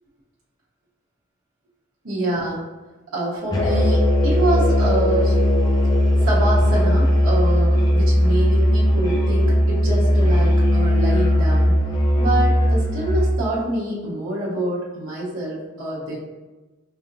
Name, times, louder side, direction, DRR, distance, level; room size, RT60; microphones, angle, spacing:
voice 1, 2.0-2.6 3.1-5.4 6.2-11.8 12.2-16.2, right 1 dB, 60° right, -8 dB, 1.0 m, -26 dB
Musical instrument, 3.5-13.4, equal, 15° left, 0.4 m, -18 dB
4.9 x 2.8 x 2.6 m, 1.2 s
head